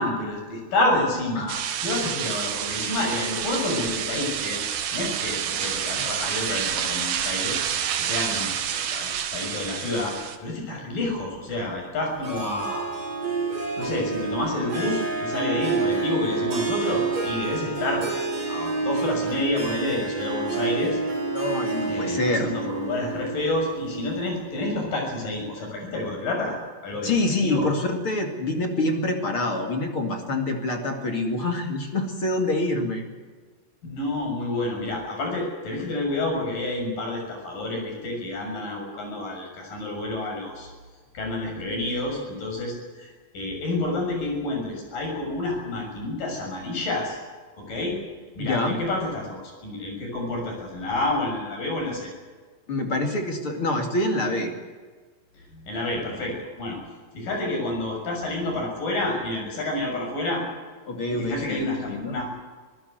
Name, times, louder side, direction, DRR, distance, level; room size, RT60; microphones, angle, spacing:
voice 1, 0.0-4.6 4.9-7.6 8.1-10.1 10.4-12.8 13.8-18.1 18.5-21.0 21.9-26.5 26.8-27.7 33.8-40.7 41.1-47.2 47.6-48.0 48.4-52.1 55.5-56.8 57.1-60.4 61.1-62.3, left 2 dB, 60° left, 1 dB, 8.2 m, -29 dB
sound 1, 1.5-10.4, right 9 dB, 70° right, 3.3 m, -28 dB
Harp, 12.2-24.4, right 3 dB, 45° right, 7.3 m, -28 dB
voice 2, 21.3-22.5 27.0-33.0 48.4-48.8 52.7-54.5 60.9-62.2, left 2 dB, 40° left, 4 dB, 2.7 m, -26 dB
26.0 x 15.5 x 8.0 m, 1.4 s
omnidirectional pair, 4.5 m